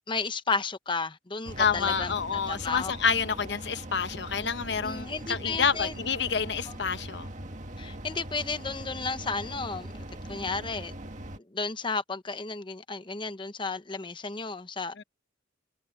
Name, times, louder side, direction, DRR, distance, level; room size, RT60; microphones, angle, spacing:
voice 1, 0.1-2.1 2.5-2.9 4.8-5.9 7.8-9.9 10.3-10.9 11.5-15.0, left 4 dB, 25° left, 0.9 m, -33 dB
sound 1, 1.4-11.4, right 1 dB, 40° right, 1.8 m, -41 dB
voice 2, 1.6-7.3 15.0-15.1, left 6 dB, 65° left, 0.9 m, -28 dB
head